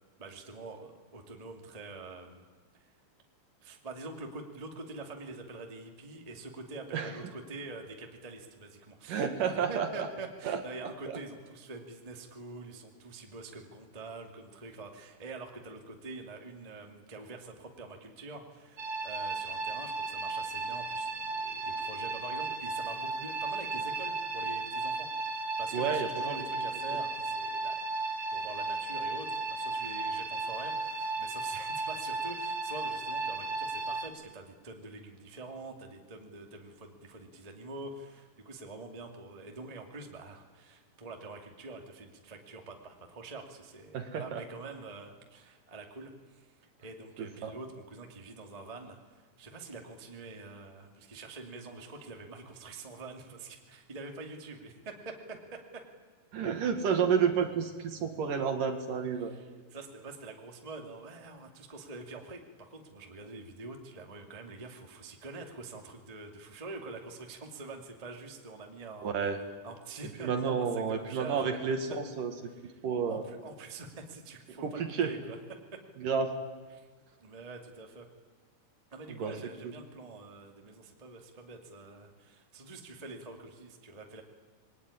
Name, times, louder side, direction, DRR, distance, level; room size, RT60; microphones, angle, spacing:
voice 1, 0.2-2.4 2.8-2.9 3.6-27.8 28.3-46.5 46.8-55.8 59.2-69.1 69.6-71.6 72.6-75.4 75.7-75.8 76.7-76.9 77.2-78.1 78.9-84.2, right 3 dB, 15° right, 2 dB, 1.6 m, -45 dB
voice 2, 9.1-10.1 10.4-10.6 11.1-11.2 25.7-26.4 43.9-44.4 47.2-47.5 56.3-59.3 69.0-69.4 70.2-72.3 72.8-73.2 74.6-75.1 76.0-76.4 79.1-79.3, right 6 dB, 60° right, 6 dB, 3.1 m, -30 dB
sound 1, 18.8-34.1, right 3 dB, 40° right, 1.9 m, -35 dB
27.0 x 22.0 x 9.9 m, 1.4 s
omnidirectional pair, 4.8 m